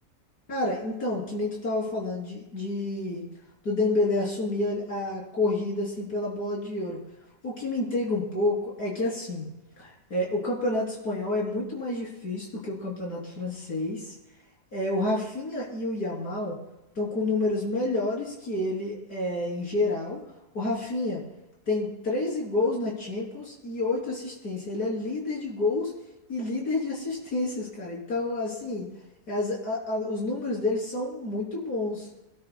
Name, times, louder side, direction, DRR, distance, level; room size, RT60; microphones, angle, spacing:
voice 1, 0.5-3.2 3.6-7.0 7.4-9.5 9.8-14.1 14.7-16.6 17.0-20.2 20.5-21.2 21.7-25.9 26.3-28.9 29.3-32.1, left 2 dB, 75° left, -3 dB, 4.1 m, -29 dB
25.0 x 12.5 x 2.3 m, 0.94 s
omnidirectional pair, 1.7 m